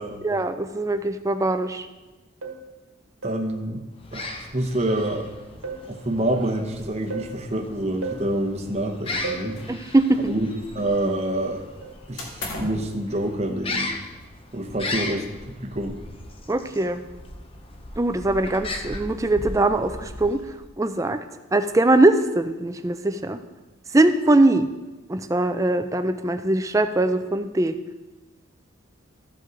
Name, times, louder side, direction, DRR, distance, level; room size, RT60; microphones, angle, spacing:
voice 1, 0.2-1.9 9.7-10.3 16.5-17.0 18.0-20.4 20.8-21.2 21.5-23.4 23.9-24.7 25.1-27.8, right 2 dB, 15° right, 9 dB, 0.4 m, -21 dB
sound 1, 2.4-2.7 3.2-3.5 4.9-5.2 5.6-5.9 7.1-7.4 8.0-8.3 9.2-9.6 11.8-12.1 12.6-12.8, right 4 dB, 85° right, 1.5 m, -34 dB
voice 2, 3.2-5.3 5.8-9.6 10.3-10.5 10.7-11.6 12.1-14.0 14.5-15.3 15.6-16.0, right 1 dB, 30° right, 2 dB, 0.8 m, -27 dB
sound 2, 3.9-20.7, left 2 dB, 25° left, 0.7 m, -37 dB
sound 3, 9.1-9.8 10.1-11.0 12.2-12.9, left 2 dB, 65° left, 1.7 m, -37 dB
14.0 x 5.4 x 3.9 m, 1.1 s
head